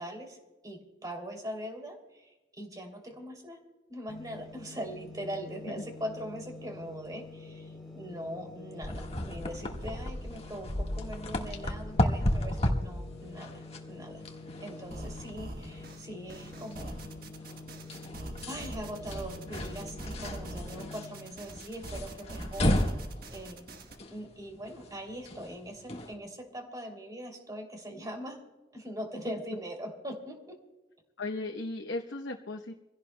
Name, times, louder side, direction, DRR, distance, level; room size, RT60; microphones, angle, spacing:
voice 1, 0.0-3.6 3.9-14.2 14.6-17.0 18.5-22.8 23.3-28.4 28.7-30.6, equal, 20° right, 3 dB, 2.8 m, -41 dB
sound 1, 4.1-21.3, left 3 dB, ahead, 4.7 m, -47 dB
sound 2, 8.8-26.1, left 1 dB, 35° left, 1.5 m, -35 dB
sound 3, 14.9-24.0, right 1 dB, 55° right, 1.3 m, -43 dB
voice 2, 31.2-32.7, left 2 dB, 80° left, 3 dB, 0.9 m, -36 dB
26.0 x 16.5 x 2.2 m, 1.1 s
head